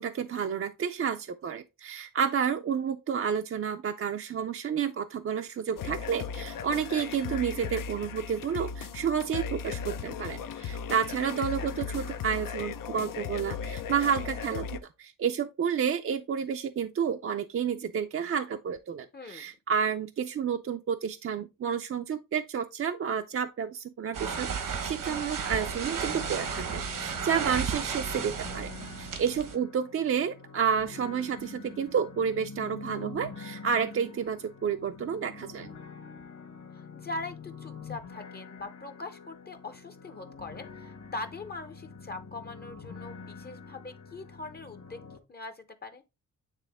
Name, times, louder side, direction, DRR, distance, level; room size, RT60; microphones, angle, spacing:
voice 1, 0.0-28.7 29.0-35.7, right 7 dB, 45° right, 0.4 m, -30 dB
sound 1, 5.8-14.8, left 7 dB, 85° left, 0.7 m, -37 dB
voice 2, 19.1-19.5 36.7-45.0 45.3-46.0, left 2 dB, 30° left, 0.6 m, -41 dB
sound 2, 24.1-29.6, right 6 dB, 75° right, 1.2 m, -34 dB
sound 3, 26.0-45.2, left 5 dB, 55° left, 1.3 m, -46 dB
9.0 x 3.5 x 3.4 m
wide cardioid pair, 155°, 32 cm